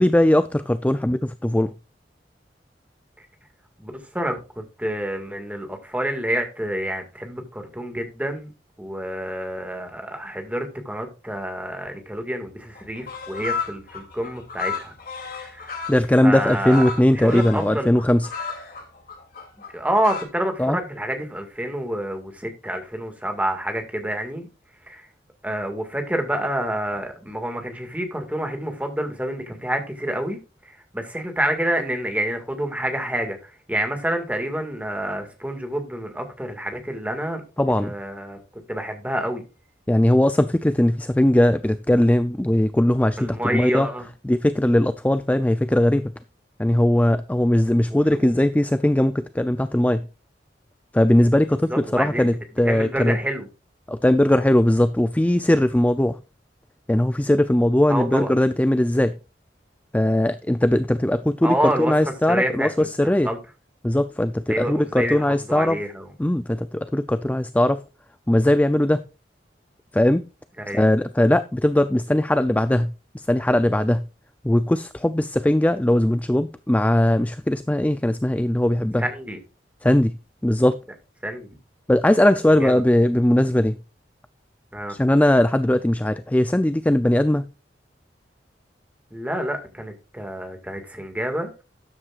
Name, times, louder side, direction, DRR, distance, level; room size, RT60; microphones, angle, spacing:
voice 1, 0.0-1.7 15.9-18.3 20.6-20.8 37.6-37.9 39.9-43.9 44.2-46.1 46.6-50.0 50.9-53.2 53.9-56.2 56.9-59.2 59.9-63.3 63.8-65.8 66.2-67.8 68.3-69.0 69.9-70.2 70.7-74.1 74.4-79.1 79.8-80.1 80.4-80.8 81.9-83.8 84.9-87.5, left 1 dB, 10° left, 0.4 m, -19 dB
voice 2, 3.8-8.5 8.8-14.9 15.2-15.8 16.2-16.8 17.1-17.9 19.7-24.5 24.9-25.0 25.4-30.4 30.9-37.4 37.8-38.4 38.7-39.4 43.2-44.0 47.9-48.0 51.7-52.3 52.6-53.5 57.9-58.3 61.4-61.9 62.3-62.9 63.2-63.4 64.5-66.1 70.7-70.8 79.0-79.4 81.2-81.5 82.6-82.7 84.7-85.0 89.1-91.5, right 1 dB, 10° right, 2.0 m, -28 dB
sound 1, 12.5-12.6 12.7-20.2, left 5 dB, 55° left, 2.9 m, -34 dB
13.0 x 9.6 x 2.5 m
head